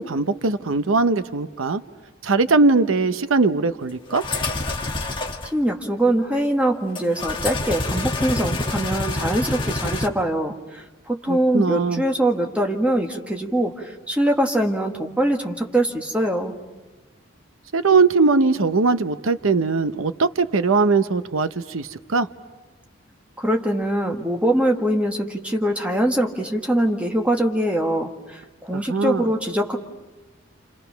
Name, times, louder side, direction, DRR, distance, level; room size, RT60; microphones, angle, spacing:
voice 1, 0.0-1.8 2.2-4.2 11.3-12.0 17.7-22.3 28.7-29.3, right 4 dB, 85° right, 11 dB, 0.8 m, -20 dB
sound 1, 4.1-5.5 7.0-10.1, left 2 dB, 25° left, 1.4 m, -27 dB
voice 2, 5.5-16.6 23.4-29.8, right 1 dB, 5° right, 1 dB, 1.7 m, -23 dB
29.0 x 29.0 x 5.8 m, 1.2 s
head